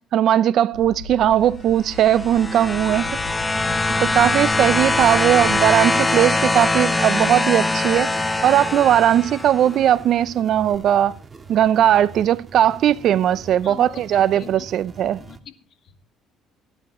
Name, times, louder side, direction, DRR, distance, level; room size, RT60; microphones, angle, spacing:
voice 1, 0.0-3.2 4.0-8.1 8.4-11.2 11.5-15.2, right 11 dB, 60° right, 0.5 m, -18 dB
sound 1, 0.7-5.7, left 3 dB, 90° left, 4.5 m, -39 dB
sound 2, 1.9-9.7 10.7-10.8, left 2 dB, 15° left, 0.8 m, -22 dB
sound 3, 2.9-15.4, right 4 dB, 25° right, 1.6 m, -42 dB
voice 2, 13.6-14.0 14.3-14.7 15.0-16.0, left 8 dB, 60° left, 2.1 m, -42 dB
20.0 x 10.0 x 3.1 m
supercardioid pair, 80°, 0 cm